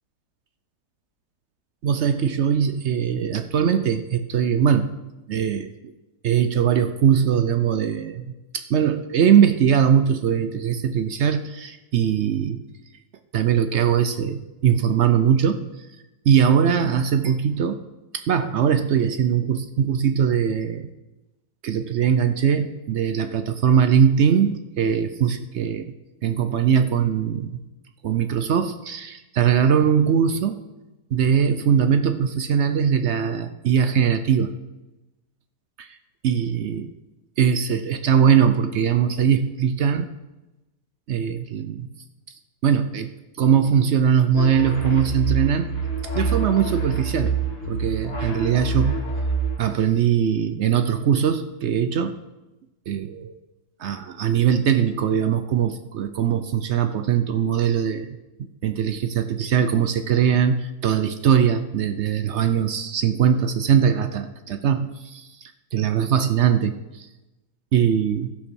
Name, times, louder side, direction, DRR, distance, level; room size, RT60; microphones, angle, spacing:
voice 1, 1.8-4.9 5.3-5.7 6.2-12.6 13.3-15.9 16.3-17.8 18.1-20.9 21.6-25.9 26.2-27.6 28.0-30.6 31.1-34.5 35.8-36.0 36.2-36.9 37.4-40.1 41.1-41.9 42.6-43.1 43.4-45.8 46.1-47.4 47.7-48.9 49.6-52.2 52.9-53.3 53.8-58.1 58.4-67.1 67.7-68.3, right 8 dB, 70° right, 9 dB, 0.6 m, -21 dB
sound 1, 44.3-49.6, right 4 dB, 35° left, 2.4 m, -26 dB
13.0 x 5.9 x 6.2 m, 1.0 s
omnidirectional pair, 1.8 m